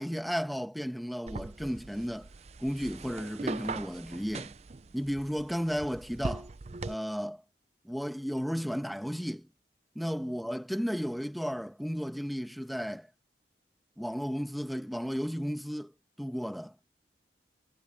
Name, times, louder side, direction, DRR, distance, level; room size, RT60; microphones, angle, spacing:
voice 1, 0.0-2.3 2.6-4.5 4.9-6.5 6.8-7.4 7.8-9.5 10.0-13.1 14.0-15.9 16.2-16.7, equal, ahead, 1.1 m, -34 dB
sound 1, 1.3-6.9, right 3 dB, 40° right, 0.5 m, -40 dB
head